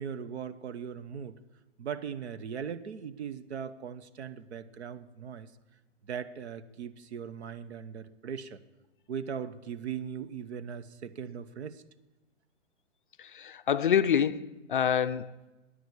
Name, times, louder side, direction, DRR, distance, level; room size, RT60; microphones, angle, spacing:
voice 1, 0.0-1.4 1.8-5.5 6.0-8.6 9.1-11.8, right 7 dB, 65° right, 1.0 m, -39 dB
voice 2, 13.2-15.5, left 8 dB, 45° left, 0.4 m, -27 dB
13.0 x 10.0 x 8.2 m
hypercardioid pair, 170°, 36 cm